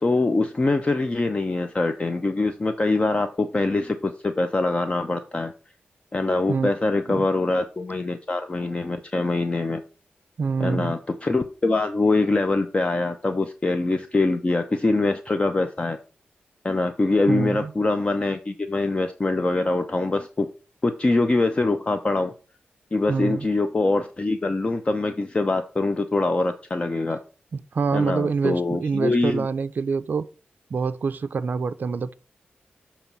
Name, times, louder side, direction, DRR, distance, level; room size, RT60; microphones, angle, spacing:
voice 1, 0.0-5.5 6.1-9.8 10.6-16.0 16.6-20.5 20.8-22.3 22.9-27.2 27.9-29.5, left 2 dB, 30° left, 0.5 m, -23 dB
voice 2, 10.4-10.9 17.3-17.7 23.1-23.5 27.7-30.3 30.7-32.1, right 5 dB, 55° right, 0.4 m, -25 dB
6.9 x 3.0 x 5.9 m
wide cardioid pair, 105°, 4 cm